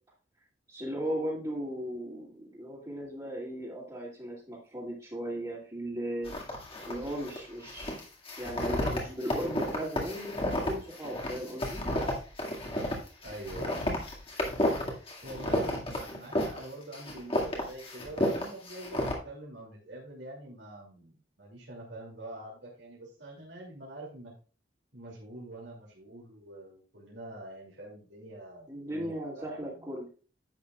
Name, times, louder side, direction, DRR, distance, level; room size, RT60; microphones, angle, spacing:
voice 1, 0.7-6.3 6.9-8.0 8.4-11.8 28.7-30.1, equal, 20° right, -7 dB, 2.5 m, -37 dB
sound 1, 6.2-7.4 7.6-16.7 16.9-19.2, left 1 dB, 30° left, 2.1 m, -32 dB
voice 2, 13.2-14.1 15.2-24.3 24.9-29.9, right 1 dB, 65° right, -4 dB, 2.7 m, -45 dB
10.5 x 8.5 x 2.4 m, 0.37 s
head